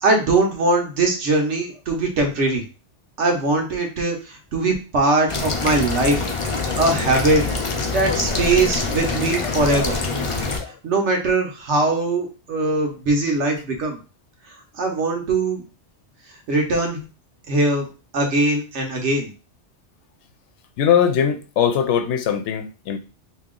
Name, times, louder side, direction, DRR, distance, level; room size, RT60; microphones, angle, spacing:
voice 1, 0.0-2.6 3.2-6.2 6.5-7.4 7.9-10.0 10.8-14.0 14.8-15.6 16.5-17.0 17.5-17.9 18.1-19.3, right 2 dB, 80° right, 1.3 m, -21 dB
sound 1, 5.3-10.6, left 3 dB, 35° left, 0.5 m, -25 dB
voice 2, 8.1-8.5 9.4-9.8 10.6-10.8 20.8-23.0, left 8 dB, 80° left, 0.9 m, -22 dB
3.0 x 2.9 x 3.7 m
omnidirectional pair, 1.2 m